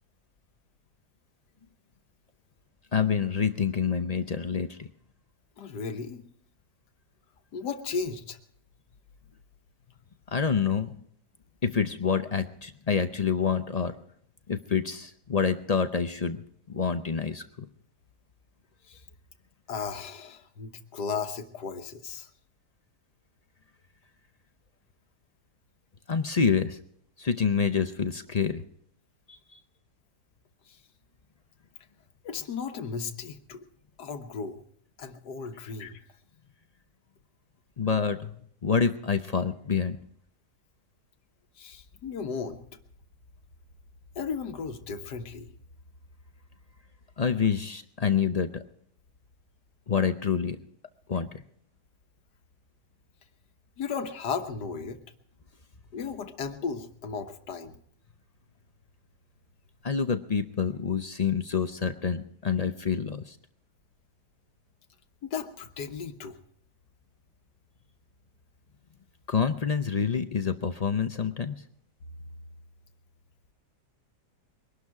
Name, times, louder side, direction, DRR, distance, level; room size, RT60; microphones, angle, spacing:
voice 1, 2.9-4.9 10.3-10.9 11.6-13.9 14.5-16.4 16.7-17.7 26.1-26.8 27.2-28.6 29.3-29.6 37.8-38.3 38.6-40.0 47.2-48.6 49.9-50.6 51.1-51.4 59.8-63.4 69.3-71.6, left 6 dB, 50° left, 9 dB, 0.4 m, -27 dB
voice 2, 5.6-6.2 7.5-8.4 18.9-19.0 19.7-22.3 30.7-30.8 32.2-33.7 34.0-34.6 35.0-36.0 41.6-42.6 44.2-45.5 53.8-55.0 55.9-57.8 65.2-66.3, left 5 dB, 85° left, 7 dB, 1.8 m, -35 dB
22.5 x 12.0 x 4.8 m, 0.66 s
omnidirectional pair, 1.7 m